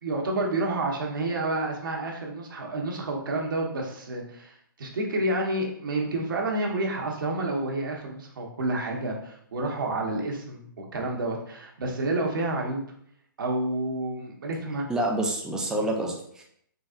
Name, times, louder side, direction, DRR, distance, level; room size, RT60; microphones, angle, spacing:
voice 1, 0.0-12.8 13.4-14.9, right 2 dB, 65° right, 0 dB, 1.1 m, -29 dB
voice 2, 14.9-16.4, right 1 dB, 5° right, -1 dB, 0.5 m, -28 dB
4.0 x 3.4 x 2.5 m, 0.67 s
hypercardioid pair, 140°, 12 cm